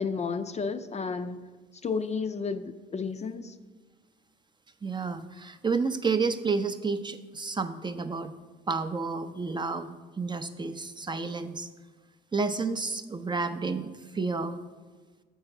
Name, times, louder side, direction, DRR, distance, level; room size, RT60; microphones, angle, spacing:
voice 1, 0.0-1.4 1.8-3.5, left 5 dB, 35° left, 10 dB, 0.4 m, -32 dB
voice 2, 4.8-8.3 8.7-11.7 12.3-14.6, right 4 dB, 25° right, 9 dB, 0.5 m, -30 dB
6.9 x 5.5 x 5.9 m, 1.3 s
cardioid pair, 90°, 20 cm